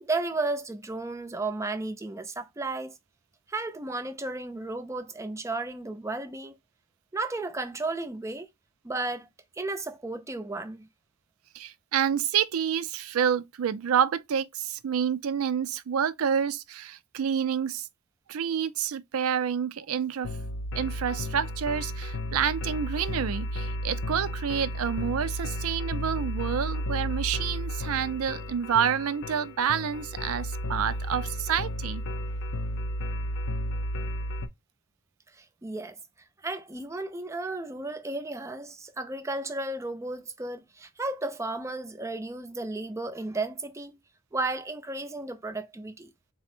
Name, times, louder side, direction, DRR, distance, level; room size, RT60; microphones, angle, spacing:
voice 1, 0.0-2.9 3.5-6.5 7.1-8.5 8.8-9.3 9.6-10.9 35.4-36.0 36.4-44.0 44.3-46.1, right 2 dB, 15° right, 0.4 m, -33 dB
voice 2, 11.5-17.9 18.3-20.4 20.7-32.0, right 8 dB, 90° right, 0.4 m, -28 dB
sound 1, 20.2-34.5, equal, 65° left, 0.5 m, -33 dB
4.0 x 2.1 x 4.3 m
head